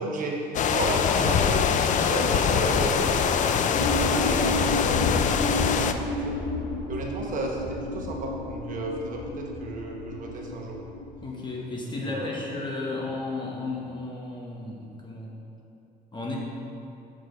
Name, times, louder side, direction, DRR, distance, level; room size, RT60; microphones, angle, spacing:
voice 1, 0.0-6.4 6.9-10.8 12.0-12.3, right 2 dB, 50° right, -1 dB, 1.1 m, -33 dB
sound 1, 0.5-5.9, left 7 dB, 50° left, 0.4 m, -23 dB
sound 2, 3.7-11.3, left 1 dB, 85° left, 1.6 m, -31 dB
voice 2, 11.2-15.3 16.1-16.4, left 3 dB, 25° left, -2 dB, 1.3 m, -33 dB
6.3 x 5.0 x 5.2 m, 2.8 s
cardioid pair, 110°, 17 cm